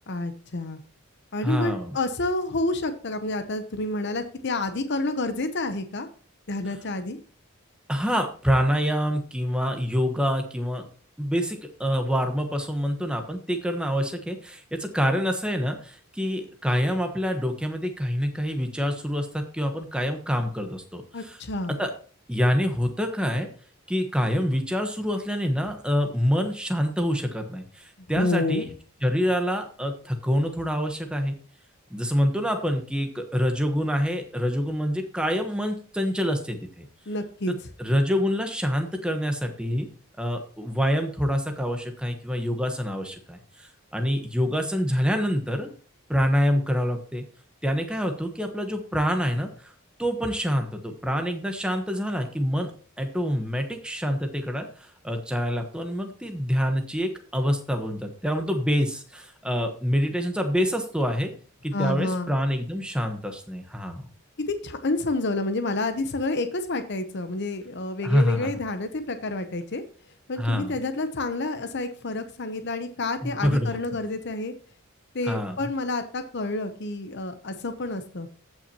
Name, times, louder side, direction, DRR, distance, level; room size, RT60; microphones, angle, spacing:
voice 1, 0.1-0.8 1.3-6.1 6.5-7.2 21.1-21.8 28.1-28.7 37.1-37.5 61.7-62.3 64.5-69.8 70.3-74.5 75.1-78.3, left 2 dB, 55° left, 9 dB, 0.8 m, -29 dB
voice 2, 1.4-2.0 7.9-10.9 11.2-21.4 21.8-21.9 22.3-23.5 23.9-28.7 29.0-31.3 31.9-36.9 37.5-39.9 40.2-43.4 43.9-45.7 46.1-47.2 47.6-49.7 50.0-52.7 53.0-54.7 55.0-61.3 61.6-64.1 68.0-68.5 70.4-70.7 73.2-73.7 75.3-75.6, equal, 5° right, 5 dB, 1.1 m, -26 dB
15.5 x 5.8 x 3.0 m, 0.41 s
head